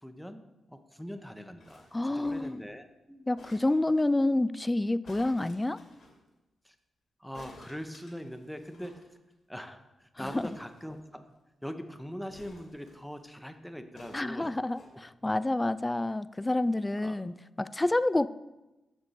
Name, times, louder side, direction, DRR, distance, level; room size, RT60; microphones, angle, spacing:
voice 1, 0.0-3.3 6.6-6.7 7.2-9.0 9.5-11.2 11.6-14.5 17.0-17.2, equal, ahead, 8 dB, 0.9 m, -42 dB
sound 1, 1.6-2.7 3.4-4.1 5.0-6.1 7.3-9.0 9.3-9.4 9.6-9.8 10.2-11.4 12.3-13.2 13.9-14.9 15.6-15.7, left 2 dB, 70° left, 2.7 m, -54 dB
voice 2, 1.9-2.6 3.3-5.8 10.2-10.5 14.1-18.3, left 2 dB, 20° left, 16 dB, 0.3 m, -28 dB
7.8 x 6.5 x 4.2 m, 1.0 s
supercardioid pair, 55°, 0 cm